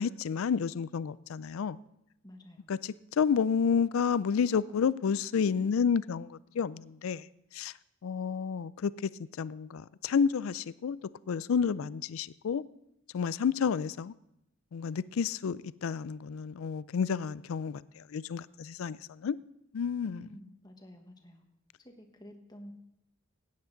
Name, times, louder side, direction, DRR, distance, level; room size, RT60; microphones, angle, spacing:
voice 1, 0.0-1.8 2.7-7.3 7.5-7.7 8.0-9.1 9.4-11.0 11.3-12.6 13.1-14.1 14.7-19.4 19.7-20.3, left 6 dB, 80° left, 0.4 m, -30 dB
voice 2, 2.2-2.7 20.1-21.4 21.8-22.7, equal, 20° left, 1.2 m, -50 dB
16.0 x 9.5 x 3.9 m
head